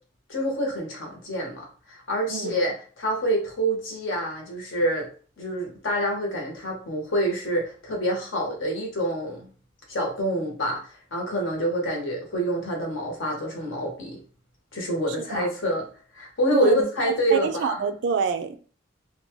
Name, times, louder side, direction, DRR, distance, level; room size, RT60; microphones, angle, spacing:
voice 1, 0.3-5.1 5.4-9.5 9.9-14.2 14.7-15.9 16.1-17.8, right 1 dB, 70° left, 0 dB, 1.0 m, -27 dB
voice 2, 16.5-16.8 17.3-18.6, right 6 dB, 60° right, 8 dB, 0.3 m, -26 dB
2.6 x 2.2 x 3.0 m, 0.40 s
head